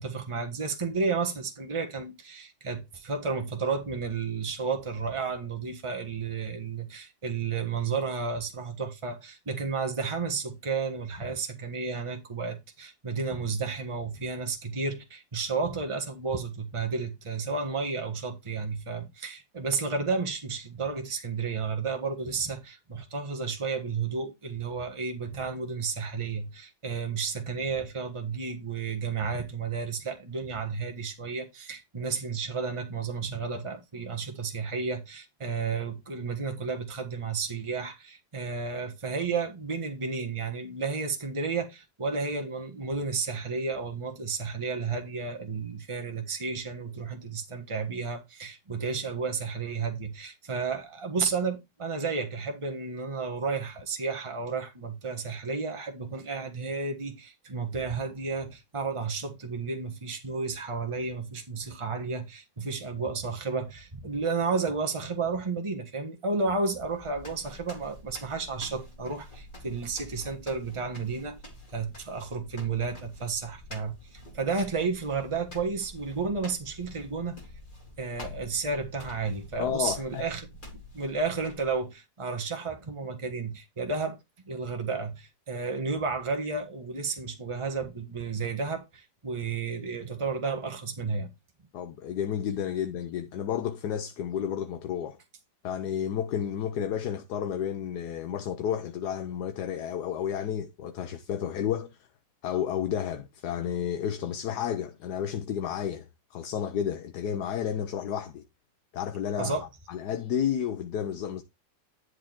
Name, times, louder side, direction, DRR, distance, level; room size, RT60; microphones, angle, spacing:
voice 1, 0.0-71.4 71.7-77.4 78.0-80.5 80.9-84.2 84.4-91.3 109.4-109.7, right 4 dB, 15° right, 1.5 m, -32 dB
sound 1, 66.8-81.9, left 1 dB, 25° left, 2.4 m, -47 dB
voice 2, 79.6-80.3 91.7-95.2 95.6-102.0 102.4-108.4 108.9-109.5 109.9-111.4, left 9 dB, 65° left, 1.3 m, -31 dB
10.0 x 4.8 x 4.3 m
omnidirectional pair, 2.0 m